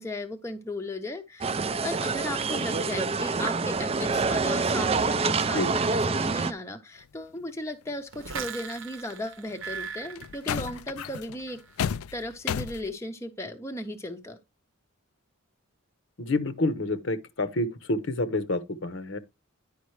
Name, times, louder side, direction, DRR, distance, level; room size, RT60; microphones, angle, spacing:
voice 1, 0.0-1.5 1.8-11.6 12.1-14.4, left 1 dB, 15° left, 0.6 m, -36 dB
sound 1, 1.4-6.5, right 4 dB, 25° right, 0.4 m, -26 dB
sound 2, 7.9-8.0 9.5-9.7 10.2-12.9, left 8 dB, 85° left, 0.4 m, -32 dB
sound 3, 8.1-11.2 11.5-11.9, right 6 dB, 70° right, 0.8 m, -39 dB
voice 2, 16.2-19.2, left 2 dB, 60° left, 0.8 m, -28 dB
10.0 x 5.1 x 3.2 m
head